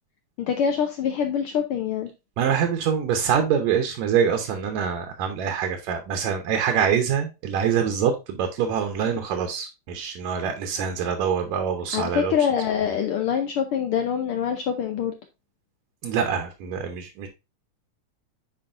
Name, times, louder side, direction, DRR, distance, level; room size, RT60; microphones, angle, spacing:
voice 1, 0.4-2.1 11.9-15.1, left 8 dB, 80° left, 1.2 m, -25 dB
voice 2, 2.4-12.3 16.0-17.3, right 7 dB, 75° right, 2.2 m, -25 dB
8.8 x 5.0 x 2.5 m
omnidirectional pair, 3.4 m